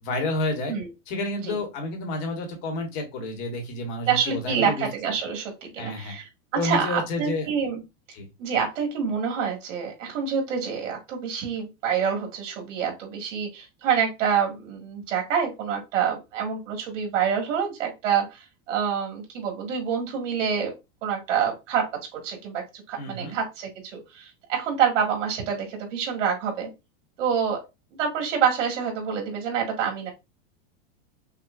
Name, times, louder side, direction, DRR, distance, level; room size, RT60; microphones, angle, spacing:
voice 1, 0.0-0.8 1.1-4.9 5.8-6.1 6.5-7.5 8.1-8.3 23.0-23.4, left 2 dB, 35° left, 3 dB, 1.1 m, -30 dB
voice 2, 4.1-7.8 8.4-20.7 21.0-21.9 22.1-26.7 27.2-27.6 28.0-30.1, right 7 dB, 75° right, 2 dB, 1.8 m, -27 dB
5.9 x 2.2 x 2.3 m, 0.24 s
supercardioid pair, 175°, 38 cm